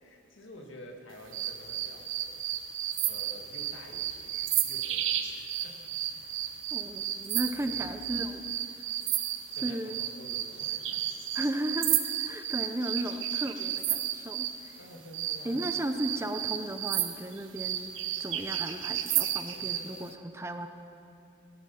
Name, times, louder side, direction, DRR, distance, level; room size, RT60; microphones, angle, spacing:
voice 1, 0.0-2.4 3.1-5.8 6.1-6.4 7.6-7.9 9.5-11.1 12.5-12.7 14.8-15.8 19.5-20.1, equal, 90° left, 2 dB, 1.8 m, -50 dB
sound 1, 1.3-14.6 15.1-19.9, right 11 dB, 90° right, 0.8 m, -32 dB
voice 2, 6.7-8.4 9.6-10.0 11.3-12.0 12.2-14.8 15.4-17.9 18.2-20.7, right 1 dB, 15° right, 7 dB, 0.6 m, -35 dB
17.5 x 10.5 x 5.6 m, 2.6 s
head